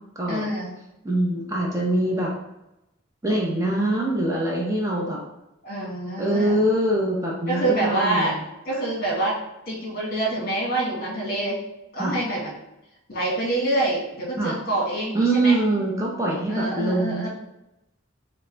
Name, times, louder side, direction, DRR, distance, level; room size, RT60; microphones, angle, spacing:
voice 1, 0.3-0.7 5.6-6.6 7.5-8.3 8.6-9.3 9.7-11.6 11.9-12.5 13.1-15.6 16.5-17.3, right 2 dB, 45° left, -3 dB, 1.6 m, -26 dB
voice 2, 1.0-2.3 3.2-5.2 6.2-8.4 12.0-12.1 14.4-14.5 15.1-17.3, right 1 dB, 15° right, -3 dB, 0.7 m, -23 dB
6.3 x 2.3 x 3.3 m, 0.90 s
head